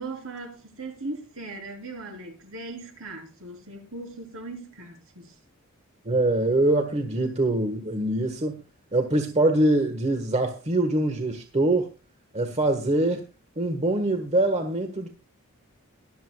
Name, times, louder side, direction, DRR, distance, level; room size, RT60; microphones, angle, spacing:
voice 1, 0.0-5.4, right 2 dB, 65° right, 3.9 m, -38 dB
voice 2, 6.0-8.5 8.9-11.9 12.3-13.2 13.6-15.1, right 2 dB, 30° right, 1.4 m, -24 dB
24.0 x 8.0 x 2.3 m
head